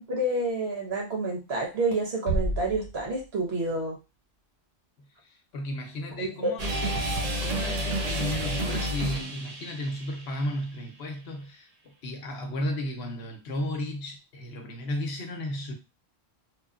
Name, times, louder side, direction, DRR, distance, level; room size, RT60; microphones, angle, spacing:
voice 1, 0.0-4.0 6.2-6.5, right 2 dB, 75° right, 1.3 m, -29 dB
sound 1, 2.3-3.9, right 1 dB, 45° left, 0.9 m, -31 dB
voice 2, 5.2-15.7, left 1 dB, 75° left, 0.9 m, -34 dB
sound 2, 6.6-10.4, equal, 50° right, 0.5 m, -30 dB
3.0 x 2.1 x 2.3 m
omnidirectional pair, 1.1 m